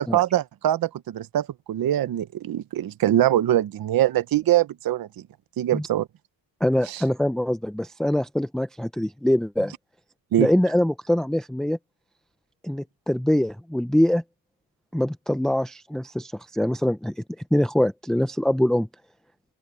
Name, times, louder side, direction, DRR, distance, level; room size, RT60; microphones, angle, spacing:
voice 1, 0.0-5.1 5.6-6.1 6.9-7.0 10.3-10.5, right 12 dB, 50° right, 0.9 m, -23 dB
voice 2, 6.6-9.7 10.4-11.8 12.6-14.2 14.9-17.2 17.5-18.9, left 1 dB, ahead, 0.7 m, -23 dB
open air
cardioid pair, 120°, 45 cm